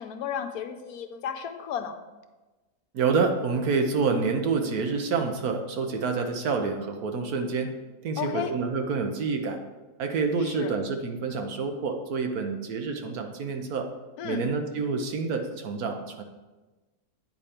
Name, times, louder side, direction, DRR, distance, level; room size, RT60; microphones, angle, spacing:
voice 1, 0.0-2.0 8.2-8.5 10.4-10.7 14.2-14.5, left 8 dB, 75° left, 8 dB, 1.1 m, -33 dB
voice 2, 2.9-7.7 8.0-9.6 10.0-13.9 14.2-16.2, right 4 dB, 75° right, 5 dB, 1.3 m, -28 dB
8.8 x 5.1 x 4.3 m, 1.2 s
omnidirectional pair, 1.6 m